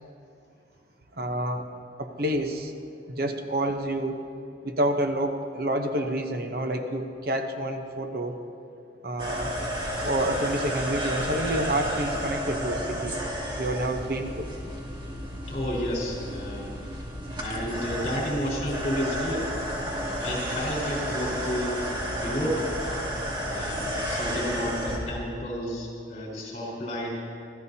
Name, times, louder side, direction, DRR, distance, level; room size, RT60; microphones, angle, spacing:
voice 1, 1.2-1.7 2.0-2.8 3.1-4.2 4.6-8.4 9.0-9.6 10.0-13.2 13.6-14.5, right 1 dB, 55° right, 5 dB, 0.9 m, -28 dB
sound 1, 9.2-25.0, equal, 25° right, 2.1 m, -32 dB
voice 2, 15.5-17.1 17.4-19.5 19.8-22.7 23.4-27.2, equal, 40° left, -4 dB, 4.5 m, -31 dB
25.0 x 15.5 x 2.8 m, 2.5 s
head